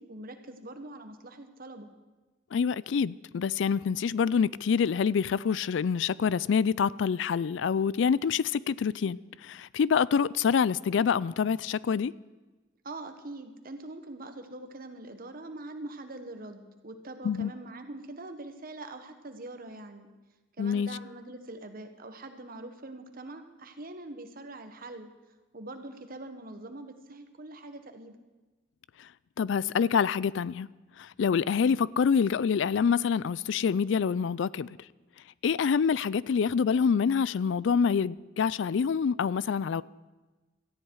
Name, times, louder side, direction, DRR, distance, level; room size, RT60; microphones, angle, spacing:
voice 1, 0.0-1.9 12.8-20.1 20.6-25.1 25.5-28.2, right 2 dB, 50° right, 1.4 m, -43 dB
voice 2, 2.5-12.1 17.2-17.5 20.6-20.9 29.0-29.1 29.4-30.7 31.0-34.8 35.4-39.8, left 6 dB, 65° left, 0.4 m, -26 dB
18.0 x 14.0 x 4.8 m
head